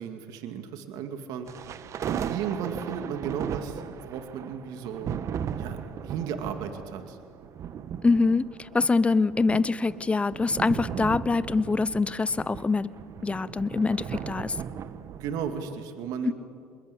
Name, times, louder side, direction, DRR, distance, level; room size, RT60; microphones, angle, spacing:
voice 1, 0.0-1.7 2.1-5.1 5.6-7.2 15.2-16.3, right 7 dB, 65° right, 6 dB, 2.3 m, -35 dB
sound 1, 1.5-15.7, right 8 dB, 50° right, 1.3 m, -37 dB
voice 2, 8.0-12.9 13.2-14.6, left 3 dB, 20° left, 17 dB, 0.9 m, -24 dB
26.5 x 21.5 x 8.5 m, 2.1 s
supercardioid pair, 85°, 7 cm